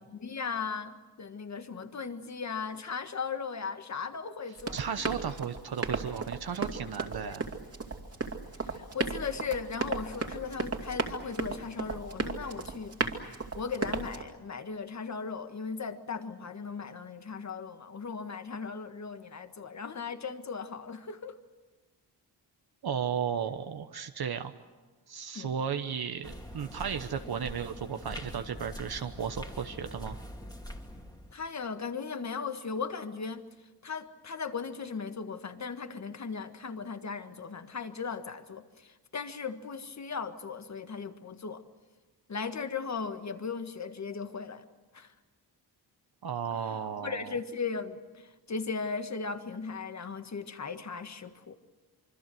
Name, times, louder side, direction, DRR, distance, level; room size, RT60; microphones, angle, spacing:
voice 1, 0.1-5.1 7.2-7.4 8.6-13.0 13.5-21.4 25.3-25.5 31.3-33.4 33.8-41.6 42.3-44.6 44.9-45.1 46.5-51.6, left 5 dB, 40° left, 9 dB, 1.6 m, -37 dB
Run, 4.6-14.2, right 4 dB, 35° right, 2.6 m, -35 dB
voice 2, 4.7-7.5 22.8-24.5 25.1-30.2 46.2-47.3, right 7 dB, 65° right, 7 dB, 1.1 m, -34 dB
sound 1, 26.2-31.3, equal, 10° left, 2.5 m, -43 dB
26.0 x 24.5 x 7.7 m, 1.2 s
wide cardioid pair, 110°, 40 cm